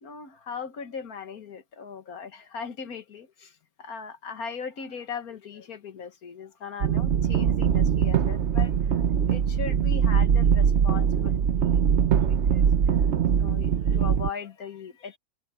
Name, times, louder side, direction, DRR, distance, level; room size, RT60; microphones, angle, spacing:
voice 1, 0.0-3.5 3.8-11.8 12.2-13.0 13.4-15.2, left 6 dB, 65° left, 1.8 m, -39 dB
sound 1, 6.8-14.3, right 7 dB, 50° right, 1.0 m, -22 dB
omnidirectional pair, 1.7 m